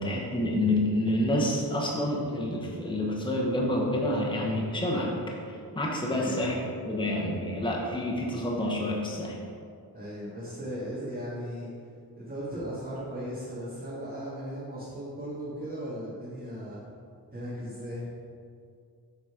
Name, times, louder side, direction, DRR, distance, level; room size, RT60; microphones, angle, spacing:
voice 1, 0.0-9.4, left 1 dB, 10° left, -2 dB, 0.9 m, -28 dB
voice 2, 6.1-6.5 9.9-11.7 12.2-16.8 17.3-18.1, equal, 20° right, -11 dB, 1.8 m, -37 dB
8.0 x 4.0 x 4.9 m, 2.3 s
wide cardioid pair, 115°, 40 cm